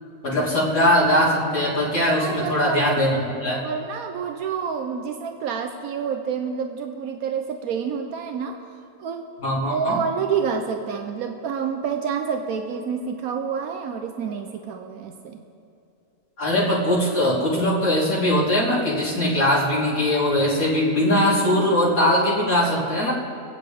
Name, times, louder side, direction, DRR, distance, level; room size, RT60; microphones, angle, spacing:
voice 1, 0.2-3.1 3.4-3.6 9.4-10.0 16.4-23.1, left 1 dB, 75° left, -8 dB, 3.5 m, -21 dB
voice 2, 2.2-3.3 3.6-9.3 9.7-15.4, right 6 dB, 85° right, 5 dB, 1.2 m, -28 dB
25.5 x 8.7 x 3.6 m, 2.6 s
omnidirectional pair, 1.5 m